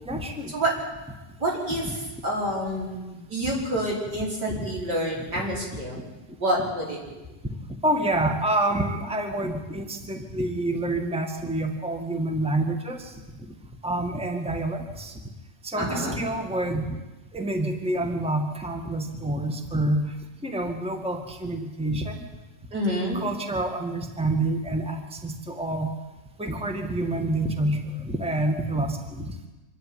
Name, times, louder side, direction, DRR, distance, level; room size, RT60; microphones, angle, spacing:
voice 1, 0.1-0.6 1.8-1.9 4.5-4.7 5.7-5.8 7.8-13.1 13.8-15.1 15.6-16.8 17.3-20.1 20.4-22.3 23.1-25.9 26.4-29.3, right 1 dB, 5° right, 4 dB, 1.8 m, -27 dB
voice 2, 1.4-1.9 2.2-6.0 6.4-7.0 15.8-16.2 22.7-23.2, right 1 dB, 80° right, -3 dB, 5.8 m, -28 dB
26.0 x 12.0 x 9.6 m, 1.1 s
omnidirectional pair, 1.8 m